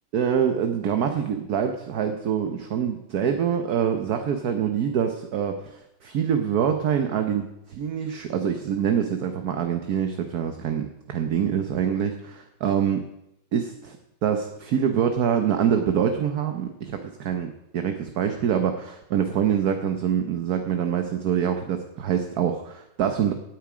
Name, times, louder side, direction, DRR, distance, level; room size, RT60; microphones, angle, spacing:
voice 1, 0.1-13.1 13.5-14.0 14.2-23.3, right 8 dB, 55° right, 6 dB, 1.1 m, -25 dB
17.0 x 9.3 x 5.0 m, 0.84 s
omnidirectional pair, 2.4 m